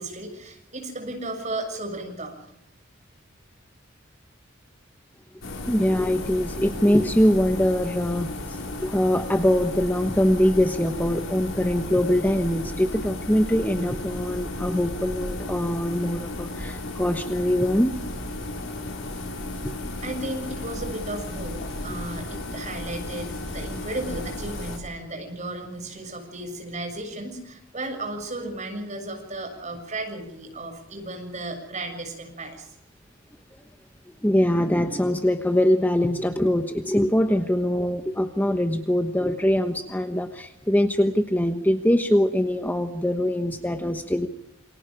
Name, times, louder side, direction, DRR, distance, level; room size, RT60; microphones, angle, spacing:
voice 1, 0.0-2.3 20.0-32.7, right 2 dB, 35° right, 4 dB, 7.0 m, -34 dB
sound 1, 5.4-24.8, left 2 dB, 80° left, 5.4 m, -34 dB
voice 2, 5.7-17.9 34.2-44.3, left 1 dB, 10° left, 6 dB, 1.1 m, -23 dB
28.5 x 25.0 x 5.1 m, 0.76 s
head